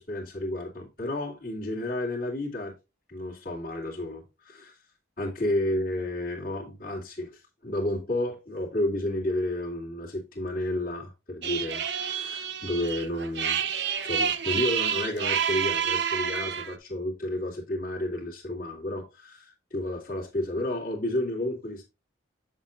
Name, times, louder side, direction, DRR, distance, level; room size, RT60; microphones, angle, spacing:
voice 1, 0.0-2.7 3.1-4.8 5.2-13.6 14.0-21.8, left 1 dB, 45° left, 2.8 m, -31 dB
sound 1, 11.4-16.8, right 8 dB, 60° right, 0.9 m, -29 dB
8.6 x 7.3 x 2.5 m
head